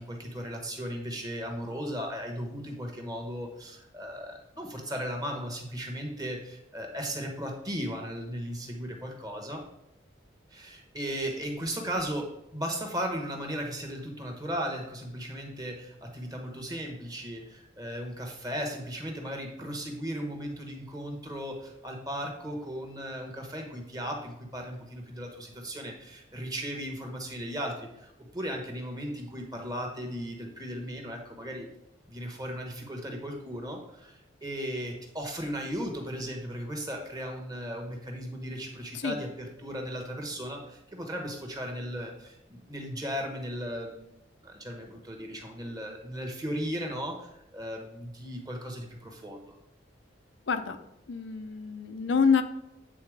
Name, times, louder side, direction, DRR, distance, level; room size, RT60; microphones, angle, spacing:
voice 1, 0.0-9.6 10.5-31.7 32.1-44.1 44.4-49.5, equal, 20° right, 2 dB, 1.1 m, -36 dB
voice 2, 50.5-50.8 51.1-52.4, left 5 dB, 75° left, 8 dB, 0.6 m, -26 dB
8.6 x 4.1 x 4.8 m, 0.84 s
head